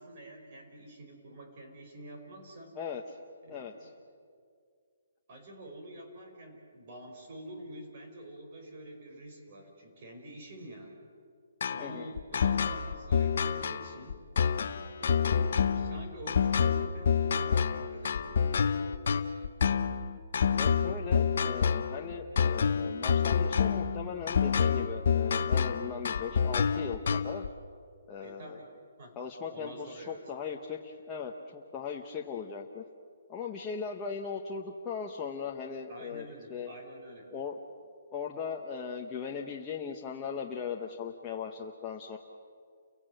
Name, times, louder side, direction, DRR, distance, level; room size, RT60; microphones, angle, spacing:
voice 1, 0.0-2.7 3.4-3.9 5.3-11.0 11.7-14.2 15.0-18.5 28.2-28.7 29.0-29.2 29.5-30.2 35.9-37.3, right 1 dB, 35° right, 2 dB, 4.8 m, -47 dB
voice 2, 3.5-3.9 11.8-12.1 15.4-15.5 20.6-27.5 28.1-28.6 29.2-32.8 33.3-36.7 37.3-37.6 38.1-42.2, left 6 dB, 15° left, -1 dB, 0.9 m, -38 dB
sound 1, 11.6-27.5, left 6 dB, 55° left, 0.9 m, -28 dB
30.0 x 17.0 x 7.7 m, 2.2 s
hypercardioid pair, 170°, 0 cm